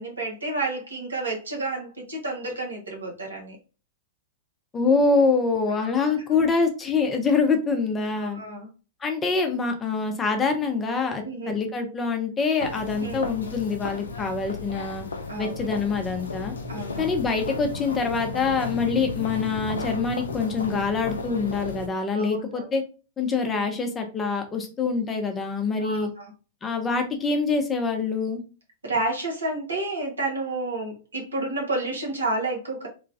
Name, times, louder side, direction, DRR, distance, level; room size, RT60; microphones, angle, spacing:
voice 1, 0.0-3.6 5.7-6.5 8.2-8.7 11.2-11.5 13.0-13.2 15.3-15.7 16.7-17.1 18.9-19.0 22.1-22.7 25.8-26.3 28.8-32.9, right 2 dB, 80° right, 0 dB, 1.0 m, -31 dB
voice 2, 4.7-8.4 9.0-15.1 15.4-16.5 17.0-22.8 23.2-26.1 26.6-28.4, left 4 dB, 20° left, 5 dB, 0.6 m, -25 dB
sound 1, 12.6-21.9, left 3 dB, 75° left, 0.4 m, -34 dB
3.0 x 2.3 x 2.4 m, 0.34 s
figure-of-eight pair, 100°, 0 cm